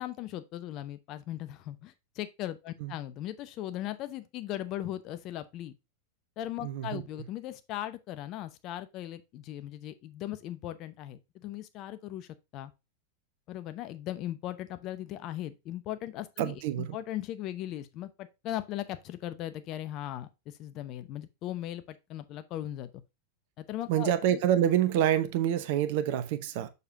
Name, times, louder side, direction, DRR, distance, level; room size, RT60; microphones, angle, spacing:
voice 1, 0.0-5.8 6.4-12.7 13.5-22.9 23.6-24.4, left 13 dB, 40° left, 0.8 m, -38 dB
voice 2, 6.6-7.0 16.4-16.8 23.9-26.7, right 10 dB, 50° right, 0.9 m, -27 dB
6.9 x 6.8 x 2.7 m
figure-of-eight pair, 90°, 0 cm